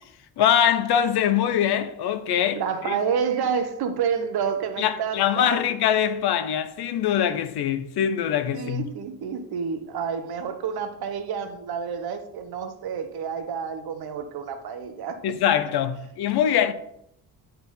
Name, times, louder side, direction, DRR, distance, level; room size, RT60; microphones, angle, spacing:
voice 1, 0.4-3.0 4.8-8.9 15.2-16.7, left 9 dB, 70° left, 0.9 m, -23 dB
voice 2, 2.5-5.6 8.5-15.3, right 6 dB, 65° right, 1.2 m, -29 dB
10.5 x 4.4 x 5.5 m
cardioid pair, 150°, 40 cm